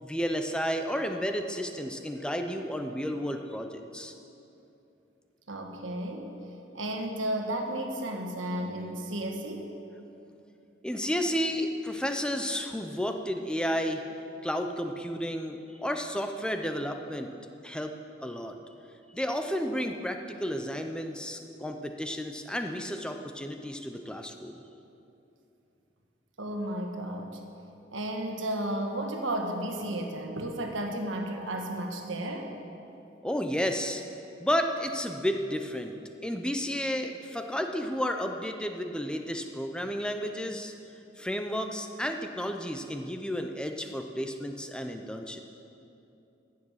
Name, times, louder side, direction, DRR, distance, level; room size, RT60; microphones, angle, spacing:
voice 1, 0.0-4.1 10.8-14.0 14.4-17.3 17.6-17.9 18.2-18.6 19.1-24.6 33.2-34.0 34.4-40.7 41.2-45.4, equal, 5° left, 5 dB, 0.6 m, -32 dB
voice 2, 5.5-6.3 6.7-9.7 26.4-27.4 27.9-32.5, right 1 dB, 85° right, 3 dB, 1.4 m, -33 dB
15.0 x 7.4 x 6.4 m, 2.8 s
head